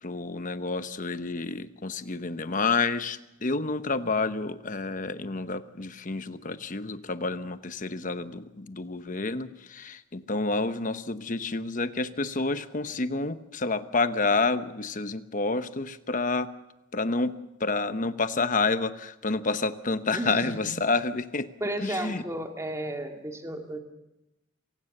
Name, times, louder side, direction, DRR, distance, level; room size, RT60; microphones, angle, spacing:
voice 1, 0.0-16.5 16.9-17.3 17.6-21.5 21.8-22.2, left 3 dB, 40° left, 11 dB, 1.0 m, -29 dB
voice 2, 20.1-20.7 21.6-23.8, right 1 dB, 15° right, 3 dB, 2.2 m, -33 dB
27.0 x 17.5 x 6.7 m, 0.94 s
head